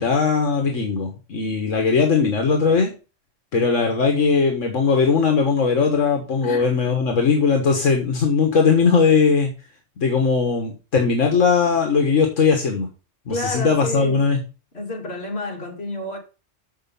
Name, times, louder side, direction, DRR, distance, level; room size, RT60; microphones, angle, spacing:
voice 1, 0.0-2.9 3.5-9.5 10.0-12.9 13.3-14.4, left 5 dB, 80° left, 1.8 m, -19 dB
voice 2, 13.3-14.3 14.7-16.2, left 2 dB, 55° left, 3.0 m, -29 dB
7.0 x 6.5 x 6.8 m
omnidirectional pair, 1.3 m